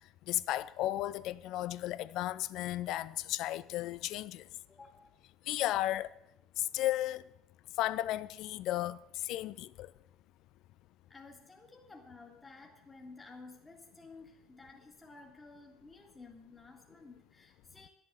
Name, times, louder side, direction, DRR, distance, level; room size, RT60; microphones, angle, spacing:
voice 1, 0.3-4.4 5.5-6.1 6.6-7.2 7.8-9.0 9.2-9.9, left 14 dB, 65° left, 0.5 m, -34 dB
voice 2, 4.7-5.1 11.1-17.9, left 3 dB, 20° left, 2.1 m, -53 dB
11.0 x 7.6 x 8.5 m
supercardioid pair, 95°, 0 cm